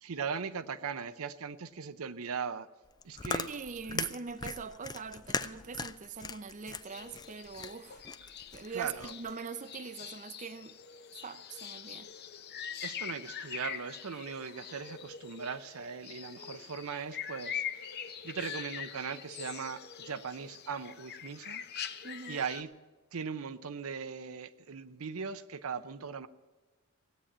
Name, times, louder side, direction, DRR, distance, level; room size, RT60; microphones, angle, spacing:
voice 1, 0.0-2.7 3.0-3.5 3.9-4.1 8.7-9.1 12.8-21.6 22.3-22.7 23.1-26.3, right 6 dB, 80° right, 0.7 m, -39 dB
Chewing mastication, 2.9-9.3, left 4 dB, 20° left, 0.4 m, -40 dB
voice 2, 3.5-8.1 8.5-10.8 11.2-12.1 22.0-22.5, right 5 dB, 35° right, 0.6 m, -42 dB
sound 1, 6.8-22.6, left 8 dB, 50° left, 0.9 m, -43 dB
16.5 x 8.8 x 8.6 m
head